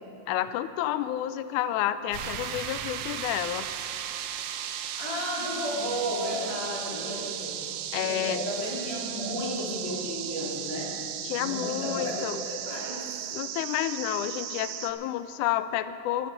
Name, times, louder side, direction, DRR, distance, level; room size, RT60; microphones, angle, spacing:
voice 1, 0.3-3.7 7.9-8.4 11.2-12.4 13.3-16.3, left 12 dB, 90° left, 12 dB, 1.8 m, -30 dB
sound 1, 2.1-14.9, right 10 dB, 80° right, 2.1 m, -36 dB
voice 2, 5.0-7.6 7.9-10.9 11.3-13.1, equal, 50° left, -6 dB, 4.6 m, -33 dB
14.0 x 12.0 x 6.7 m, 2.5 s
omnidirectional pair, 4.1 m